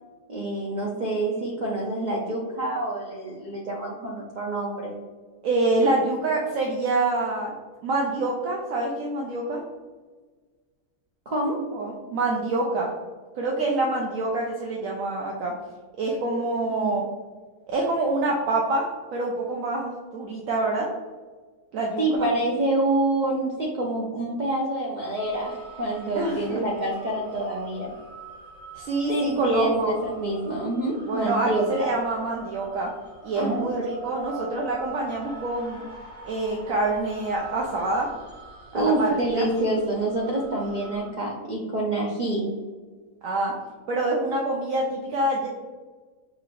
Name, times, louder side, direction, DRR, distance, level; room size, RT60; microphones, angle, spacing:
voice 1, 0.3-5.0 11.3-11.6 16.7-16.9 22.0-27.9 29.1-31.9 33.4-33.7 38.7-42.5, right 2 dB, 85° right, -3 dB, 0.4 m, -27 dB
voice 2, 5.4-7.5 7.8-9.6 11.7-12.9 13.4-15.5 16.0-17.0 17.7-20.9 21.7-22.3 26.1-26.6 28.7-29.9 31.1-32.9 33.2-35.8 36.2-38.1 38.7-39.5 40.6-40.9 43.2-43.5 43.9-45.5, right 2 dB, 70° right, -2 dB, 0.9 m, -26 dB
sound 1, 25.2-41.1, right 3 dB, 5° left, 0.7 m, -43 dB
5.6 x 2.9 x 2.5 m, 1.4 s
omnidirectional pair, 1.6 m